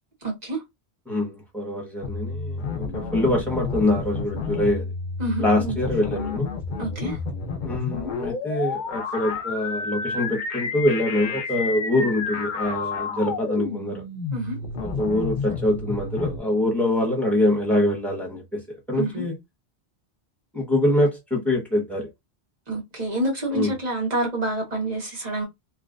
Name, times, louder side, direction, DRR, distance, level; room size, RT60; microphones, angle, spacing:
voice 1, 0.2-0.6 5.2-5.8 6.8-7.2 14.3-14.5 18.9-19.2 22.7-25.4, right 1 dB, 40° right, 1.6 m, -27 dB
voice 2, 1.1-4.9 5.4-6.5 7.6-14.0 14.8-18.6 18.9-19.4 20.5-22.1 23.5-23.7, left 1 dB, ahead, 1.3 m, -24 dB
sound 1, 2.0-16.4, left 4 dB, 50° left, 0.8 m, -30 dB
3.2 x 3.0 x 2.5 m
omnidirectional pair, 1.1 m